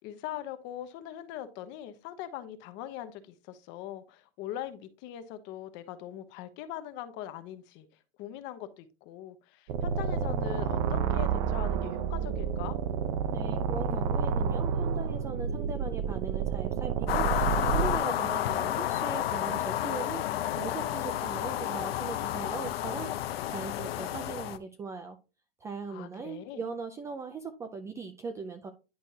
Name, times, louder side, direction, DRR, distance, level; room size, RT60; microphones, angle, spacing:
voice 1, 0.0-7.9 8.2-12.8 25.9-26.6, left 12 dB, 40° left, 10 dB, 1.0 m, -41 dB
sound 1, 9.7-18.0, right 6 dB, 45° right, 0.7 m, -29 dB
voice 2, 13.3-23.1 23.5-25.2 25.6-28.7, right 4 dB, 10° right, 7 dB, 0.3 m, -39 dB
sound 2, 17.1-24.6, left 12 dB, 80° left, 0.8 m, -31 dB
10.5 x 4.4 x 2.8 m, 0.31 s
supercardioid pair, 145°, 29 cm